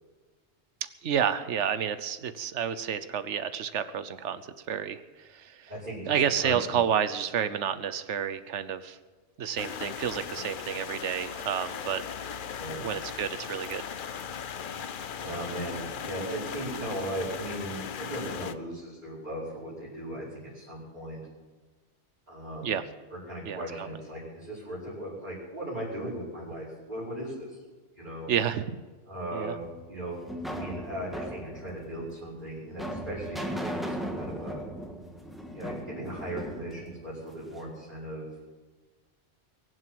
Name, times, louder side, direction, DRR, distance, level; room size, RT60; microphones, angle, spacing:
voice 1, 1.0-5.7 6.0-9.0 9.4-12.0 12.8-13.8 22.6-22.8 23.5-23.9 28.3-28.6 29.3-29.5, right 8 dB, 90° right, 13 dB, 1.2 m, -30 dB
voice 2, 5.7-6.1 6.4-6.8 12.6-12.9 15.2-21.2 22.3-22.7 23.1-27.6 28.0-28.3 29.1-29.6 29.9-30.2 30.5-34.6 35.5-38.3, right 1 dB, 40° right, -12 dB, 5.5 m, -38 dB
sound 1, 9.6-18.5, left 7 dB, 55° left, 0.8 m, -38 dB
sound 2, 29.6-37.7, equal, ahead, 1.5 m, -38 dB
22.5 x 8.0 x 7.8 m, 1.3 s
omnidirectional pair, 1.2 m